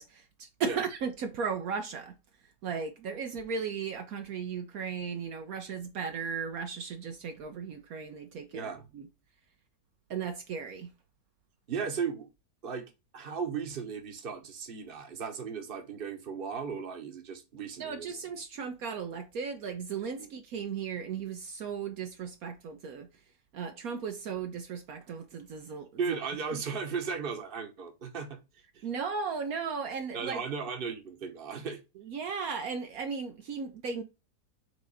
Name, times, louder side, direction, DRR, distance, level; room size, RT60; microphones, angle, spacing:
voice 1, 0.0-2.2 2.6-9.1 10.1-10.9 17.8-23.1 23.5-26.2 26.5-26.6 28.8-30.5 32.0-34.0, right 6 dB, 65° right, 1.1 m, -36 dB
voice 2, 8.5-8.8 11.7-12.3 12.6-12.9 13.1-18.1 20.2-20.3 26.0-28.4 28.7-28.9 30.1-31.8, right 6 dB, 35° right, 1.2 m, -36 dB
4.8 x 3.9 x 5.4 m
omnidirectional pair, 1.8 m